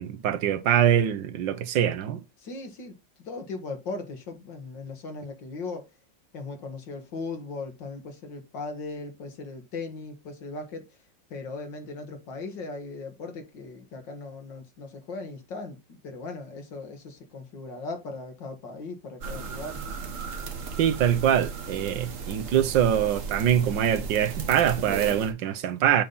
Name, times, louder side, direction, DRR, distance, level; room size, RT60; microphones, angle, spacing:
voice 1, 0.0-2.2 20.8-26.0, right 10 dB, 85° right, 1.5 m, -24 dB
voice 2, 2.4-5.9 6.3-11.0 11.3-19.8, left 3 dB, 85° left, 2.4 m, -38 dB
sound 1, 19.2-25.3, right 5 dB, 50° right, 1.4 m, -35 dB
7.4 x 5.3 x 4.1 m
omnidirectional pair, 1.9 m